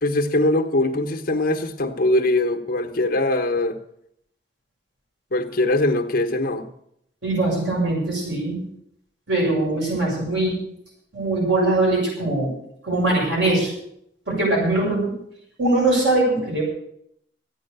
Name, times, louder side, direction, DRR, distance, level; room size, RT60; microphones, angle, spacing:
voice 1, 0.0-3.8 5.3-6.7, left 2 dB, 50° left, 1.1 m, -22 dB
voice 2, 7.2-8.6 9.3-10.6 11.1-12.5 12.8-13.7 14.3-15.1 15.6-16.6, right 2 dB, 80° right, 7.1 m, -21 dB
14.5 x 9.7 x 6.7 m
head